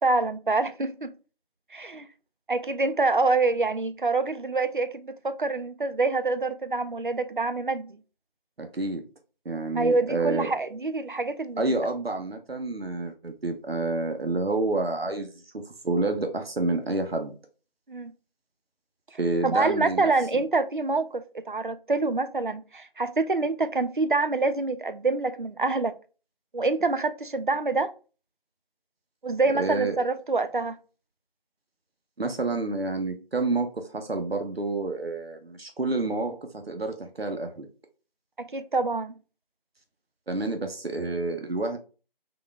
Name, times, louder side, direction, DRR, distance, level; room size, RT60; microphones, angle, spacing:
voice 1, 0.0-1.1 1.7-2.1 2.5-7.9 9.8-11.6 17.9-18.1 19.1-25.9 26.5-27.9 29.2-30.8 38.4-39.1, right 3 dB, 60° right, 0.5 m, -26 dB
voice 2, 8.6-9.0 9.4-10.5 11.6-17.3 19.2-20.1 29.5-30.0 32.2-37.7 40.3-41.8, right 2 dB, 90° right, 0.8 m, -29 dB
3.8 x 3.0 x 3.3 m
figure-of-eight pair, 170°, 29 cm